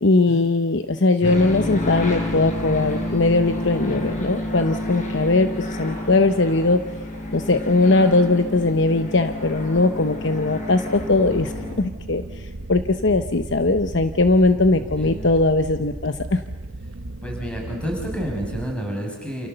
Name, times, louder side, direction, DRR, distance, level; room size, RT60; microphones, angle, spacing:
voice 1, 0.0-6.8 7.3-16.4, left 3 dB, 55° left, 9 dB, 0.9 m, -20 dB
sound 1, 1.2-11.7, left 1 dB, 35° left, 5.3 m, -29 dB
sound 2, 10.9-18.7, right 1 dB, 65° right, 1.1 m, -35 dB
voice 2, 14.7-15.3 17.2-19.5, equal, 5° left, 0 dB, 6.1 m, -30 dB
29.0 x 28.5 x 6.8 m, 1.2 s
head